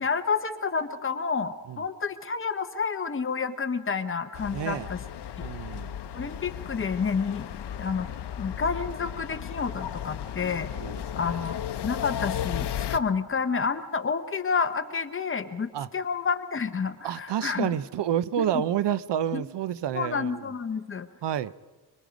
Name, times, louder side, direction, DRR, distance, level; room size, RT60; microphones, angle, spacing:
voice 1, 0.0-5.0 6.1-7.5 7.8-8.1 8.4-10.7 11.1-17.7 18.4-18.5 19.3-19.4 19.9-21.1, left 5 dB, 30° left, 0.9 m, -29 dB
sound 1, 4.3-13.0, left 9 dB, 75° left, 0.8 m, -35 dB
voice 2, 4.5-4.9 5.4-6.0 10.8-10.9 11.2-11.5 15.7-15.9 17.0-20.5 21.2-21.5, right 10 dB, 75° right, 0.7 m, -29 dB
24.5 x 23.5 x 5.2 m
wide cardioid pair, 170°, 42 cm